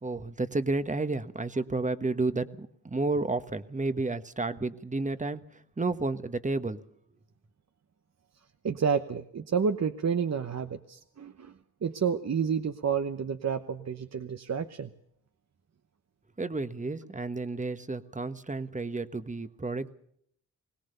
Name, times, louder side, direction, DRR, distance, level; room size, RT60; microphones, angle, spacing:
voice 1, 0.0-6.8 16.4-20.0, right 3 dB, 20° right, 11 dB, 1.3 m, -31 dB
voice 2, 8.6-11.5 11.8-14.9, right 6 dB, 45° right, 8 dB, 1.0 m, -30 dB
21.5 x 18.0 x 6.8 m, 0.69 s
cardioid pair, 60°, 37 cm